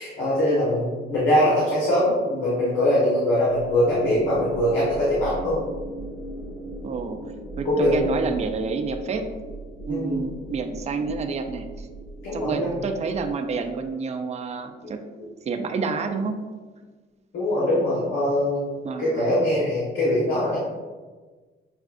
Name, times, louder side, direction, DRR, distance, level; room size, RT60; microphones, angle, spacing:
voice 1, 0.0-5.6 7.6-8.0 9.9-10.2 12.2-12.7 17.3-18.6 19.0-20.6, left 1 dB, 75° left, -8 dB, 1.2 m, -22 dB
sound 1, 3.4-13.9, right 1 dB, 90° left, 1.3 m, -38 dB
voice 2, 6.8-7.2 7.6-9.3 9.9-11.9 12.3-15.0 15.4-16.4 18.8-19.3, right 4 dB, 35° right, 6 dB, 0.4 m, -28 dB
6.3 x 2.3 x 2.5 m, 1.4 s
cardioid pair, 90°, 20 cm